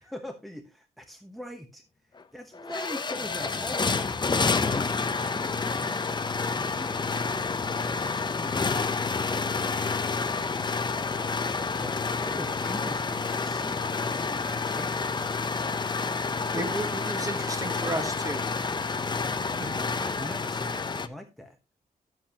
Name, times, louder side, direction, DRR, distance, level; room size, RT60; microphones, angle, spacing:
voice 1, 0.0-4.1 4.4-6.2 6.6-7.1 7.4-8.7 11.8-15.6 19.7-21.6, left 1 dB, ahead, 5 dB, 1.0 m, -42 dB
sound 1, 2.2-2.3 2.5-21.1, left 4 dB, 30° left, 0.7 m, -29 dB
voice 2, 16.5-18.4 19.5-19.7, right 1 dB, 20° right, 6 dB, 1.5 m, -33 dB
10.5 x 8.2 x 2.9 m, 0.25 s
wide cardioid pair, 110°, 15 cm